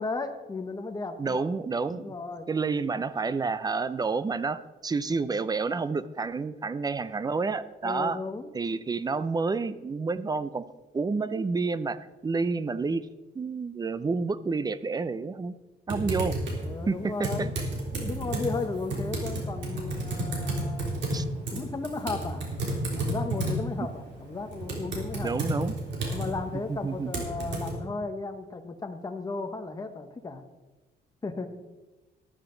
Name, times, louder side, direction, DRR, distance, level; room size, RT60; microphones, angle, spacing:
voice 1, 0.0-1.5 1.9-2.5 7.8-8.6 16.6-17.5 17.9-21.0 21.5-22.4 23.0-25.3 26.1-30.4 31.2-31.5, left 3 dB, 20° left, 6 dB, 1.1 m, -35 dB
voice 2, 1.2-2.1 2.5-8.2 8.5-10.6 10.9-13.1 13.3-15.5 15.9-16.4 16.9-17.5 21.1-21.2 23.8-23.9 25.2-25.7 26.7-27.1, right 4 dB, 20° right, 15 dB, 0.5 m, -29 dB
Typing, 15.9-27.7, right 1 dB, 75° right, 3.4 m, -32 dB
12.5 x 12.5 x 3.9 m, 1.2 s
cardioid pair, 135°, 19 cm